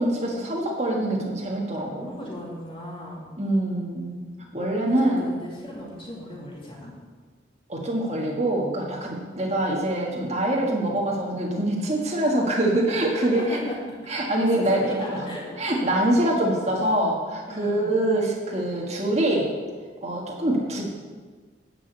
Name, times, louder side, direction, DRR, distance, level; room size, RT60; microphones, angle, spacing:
voice 1, 0.0-2.1 3.4-4.2 4.5-5.3 7.7-13.6 14.1-15.3 15.6-19.5 20.0-20.8, right 1 dB, 40° right, -3 dB, 1.6 m, -24 dB
voice 2, 1.8-3.2 4.9-6.9 9.0-9.5 13.1-15.4 17.5-18.0 20.6-20.8, equal, 30° left, -5 dB, 2.8 m, -37 dB
11.0 x 5.2 x 8.1 m, 1.5 s
head